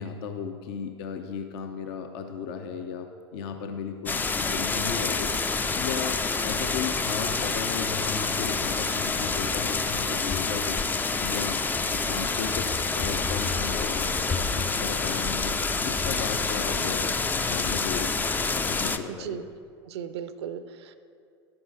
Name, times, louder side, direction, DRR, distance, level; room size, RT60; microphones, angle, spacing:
voice 1, 0.0-10.8 11.2-11.6 11.9-17.1 17.5-18.1 18.5-19.4, left 6 dB, 55° left, 6 dB, 0.6 m, -35 dB
sound 1, 4.1-19.0, left 4 dB, 10° left, 0.4 m, -27 dB
voice 2, 19.1-19.4 19.9-21.0, right 8 dB, 65° right, 12 dB, 0.5 m, -37 dB
11.0 x 8.6 x 3.8 m, 2.3 s
figure-of-eight pair, 85°, 15 cm